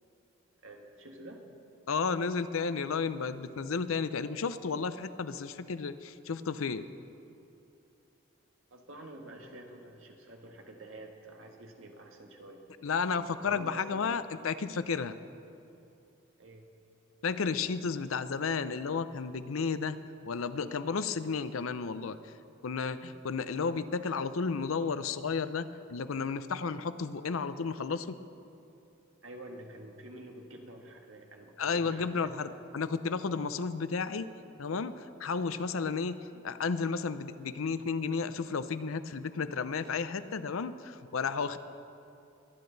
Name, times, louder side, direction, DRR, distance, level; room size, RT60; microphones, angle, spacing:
voice 1, 0.6-1.4 8.7-12.7 13.4-14.1 16.4-16.7 29.2-32.5 36.3-36.7, right 1 dB, 80° right, 2 dB, 1.7 m, -48 dB
voice 2, 1.9-6.9 12.8-15.2 17.2-20.0 20.3-22.2 22.6-28.2 31.6-34.3 34.6-36.2 36.4-41.6, left 5 dB, 85° left, 13 dB, 0.6 m, -32 dB
23.5 x 10.5 x 4.0 m, 2.7 s
head